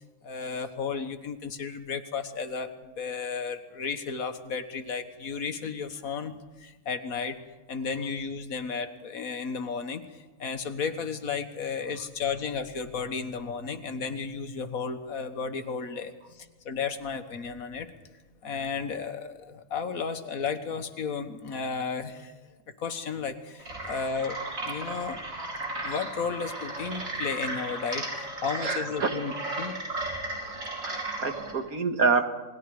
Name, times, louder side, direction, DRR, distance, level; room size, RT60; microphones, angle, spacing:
voice 1, 0.2-7.4 7.7-17.9 18.4-22.3 22.8-25.2 25.8-29.8, left 5 dB, 80° left, 9 dB, 1.8 m, -33 dB
sound 1, 23.6-31.5, right 2 dB, 70° right, 5.4 m, -35 dB
voice 2, 28.6-29.1 30.8-32.3, right 4 dB, 90° right, 6 dB, 2.2 m, -27 dB
27.5 x 20.0 x 4.9 m, 1.2 s
omnidirectional pair, 1.5 m